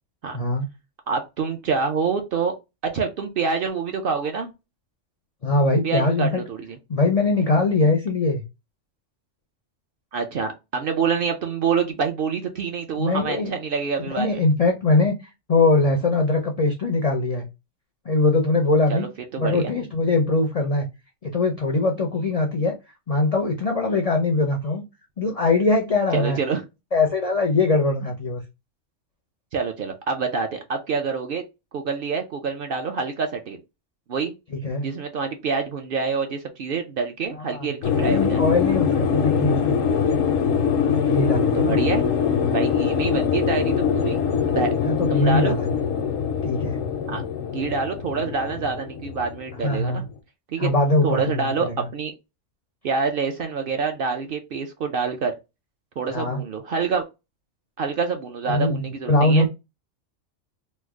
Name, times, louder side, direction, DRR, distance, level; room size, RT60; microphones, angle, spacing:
voice 1, 0.3-0.7 5.4-6.4 6.9-8.4 13.0-13.5 14.2-15.1 15.5-17.5 18.1-19.1 19.4-20.9 21.2-22.7 23.1-24.8 25.2-26.4 26.9-28.4 34.5-34.9 37.5-37.7 38.1-40.1 40.9-41.8 44.8-45.9 46.4-46.8 49.6-50.0 50.6-51.9 56.1-56.4 58.5-59.5, left 2 dB, 60° left, 0.4 m, -22 dB
voice 2, 1.1-2.5 2.9-4.5 5.8-6.8 10.1-14.4 18.9-19.1 19.3-19.7 26.1-26.6 29.5-31.4 31.7-33.6 34.1-34.3 34.8-38.4 41.5-42.0 42.5-44.2 44.4-44.7 45.1-45.6 47.1-47.2 47.5-50.0 50.5-50.7 51.0-52.1 52.8-55.3 56.0-57.0 57.8-59.5, right 5 dB, 60° right, 0.6 m, -26 dB
sound 1, 37.8-50.1, left 7 dB, 90° left, 1.0 m, -23 dB
3.2 x 2.0 x 3.4 m
omnidirectional pair, 1.3 m